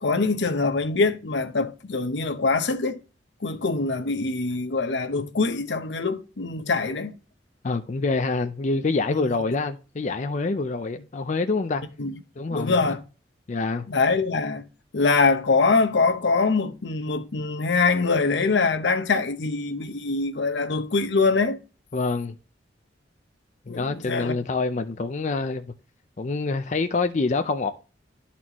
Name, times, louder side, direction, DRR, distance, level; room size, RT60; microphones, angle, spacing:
voice 1, 0.0-3.0 3.4-7.2 9.1-9.2 12.0-12.1 12.5-13.0 13.9-14.6 14.9-21.6 23.7-24.4, left 4 dB, 75° left, 0.8 m, -23 dB
voice 2, 7.6-11.8 12.4-13.0 13.5-13.9 21.9-22.3 23.7-25.7 26.2-27.7, left 3 dB, 40° left, 0.5 m, -26 dB
12.5 x 4.2 x 2.9 m
head